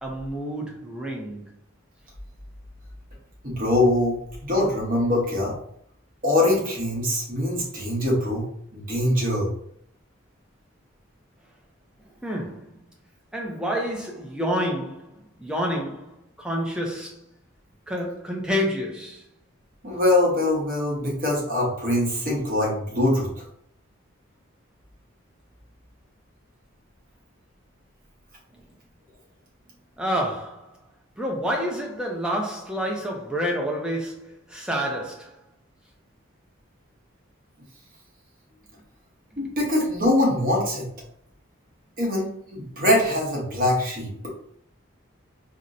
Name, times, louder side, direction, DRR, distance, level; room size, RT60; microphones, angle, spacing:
voice 1, 0.0-1.4 12.2-12.7 13.3-17.2 17.9-19.2 30.0-30.7 31.2-35.4, equal, 5° right, 0.5 m, -29 dB
voice 2, 3.4-4.2 4.4-5.5 6.2-8.5 8.7-9.5 19.8-23.3 39.4-40.9 42.0-44.1, left 1 dB, 40° right, 1.0 m, -23 dB
4.2 x 2.1 x 2.6 m
head